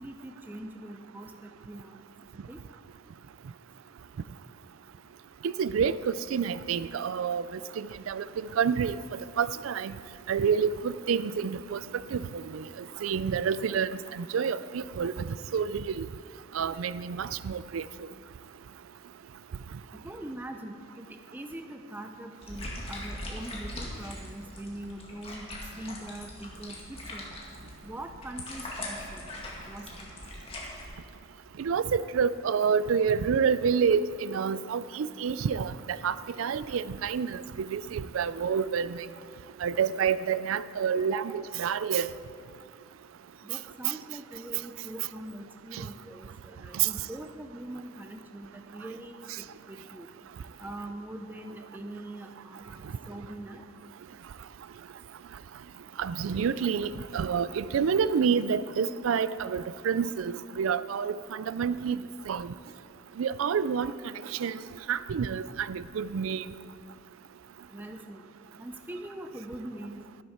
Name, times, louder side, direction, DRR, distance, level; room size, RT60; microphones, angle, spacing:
voice 1, 0.0-2.1 2.5-2.6 19.9-25.5 25.8-27.3 27.8-29.2 29.7-30.1 41.1-41.4 43.4-50.1 50.6-53.6 67.7-68.2 68.6-70.1, right 1 dB, 10° right, 5 dB, 0.5 m, -42 dB
voice 2, 5.4-7.4 7.8-8.2 8.6-9.0 9.4-9.9 10.3-11.8 12.1-12.6 13.0-15.1 15.5-16.1 16.5-17.8 31.6-35.7 36.0-39.1 39.6-42.1 45.7-45.9 46.7-46.9 56.0-62.0 62.3-62.5 63.2-63.9 64.4-64.6 64.9-66.4, right 6 dB, 90° right, 16 dB, 0.4 m, -28 dB
sound 1, 22.4-30.8, left 1 dB, 30° left, 2.1 m, -41 dB
12.5 x 12.0 x 4.3 m, 2.4 s
head